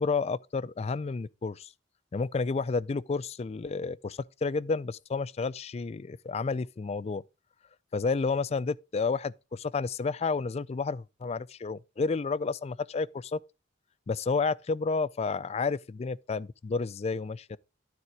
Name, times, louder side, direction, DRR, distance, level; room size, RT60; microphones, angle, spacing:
voice 1, 0.0-1.7 2.1-7.2 7.9-13.4 14.1-17.6, left 4 dB, 35° left, 0.4 m, -31 dB
12.5 x 4.2 x 4.6 m
head